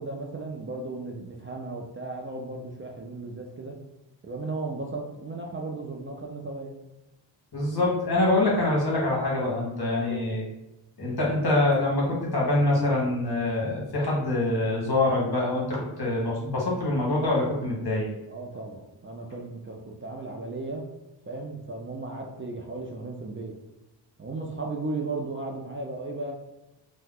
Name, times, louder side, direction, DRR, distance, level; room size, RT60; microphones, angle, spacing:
voice 1, 0.0-3.8 4.2-6.7 10.0-10.3 18.3-20.9 21.2-23.6 24.2-26.3, right 3 dB, 30° right, 0 dB, 0.4 m, -35 dB
voice 2, 7.5-10.4 11.0-18.1, left 2 dB, 55° left, -4 dB, 1.2 m, -25 dB
2.7 x 2.1 x 3.6 m, 1.0 s
wide cardioid pair, 70°, 45 cm